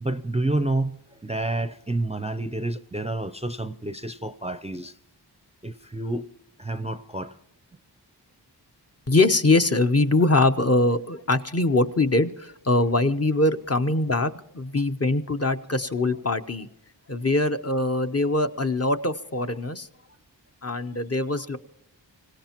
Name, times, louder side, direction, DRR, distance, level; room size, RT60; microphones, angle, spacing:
voice 1, 0.0-4.9 5.6-6.3 6.6-7.3, right 2 dB, 15° right, 0.5 m, -29 dB
voice 2, 9.1-16.7 17.1-19.9 20.6-21.6, left 2 dB, 35° left, 0.8 m, -23 dB
25.5 x 17.0 x 3.0 m
cardioid pair, 45°, 44 cm